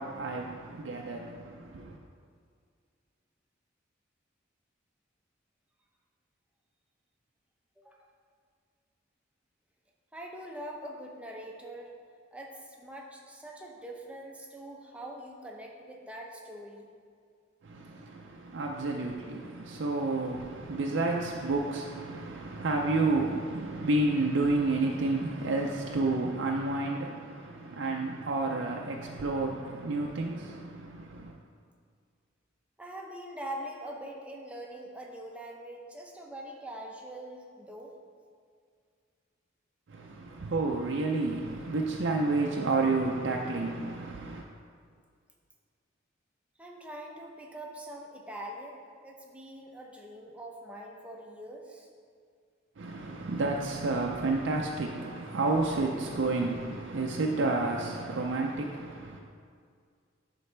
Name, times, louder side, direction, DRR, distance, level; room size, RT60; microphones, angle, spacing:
voice 1, 0.0-2.0 17.6-31.3 39.9-44.4 52.8-59.2, right 3 dB, 70° right, 0 dB, 0.5 m, -30 dB
voice 2, 7.8-8.1 10.1-11.9 12.3-16.9 32.8-37.9 46.6-51.9, right 1 dB, 5° right, -1 dB, 0.7 m, -43 dB
11.5 x 4.0 x 3.3 m, 2.1 s
head